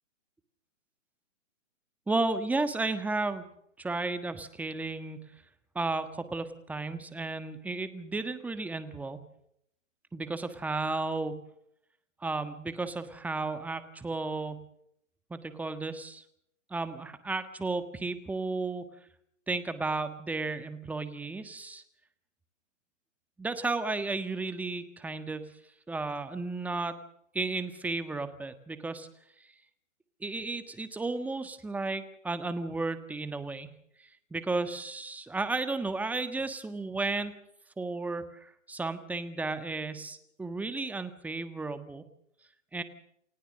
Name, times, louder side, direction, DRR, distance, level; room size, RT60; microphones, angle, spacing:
voice 1, 2.1-3.4 3.8-5.2 5.7-9.2 10.1-11.4 12.2-14.6 15.3-16.2 16.7-18.8 19.5-21.8 23.4-25.5 25.9-27.0 27.3-29.1 30.2-33.7 34.0-37.3 37.8-42.0 42.7-42.8, right 3 dB, 5° right, 10 dB, 1.4 m, -33 dB
29.0 x 16.5 x 6.5 m, 0.73 s
hypercardioid pair, 145°, 38 cm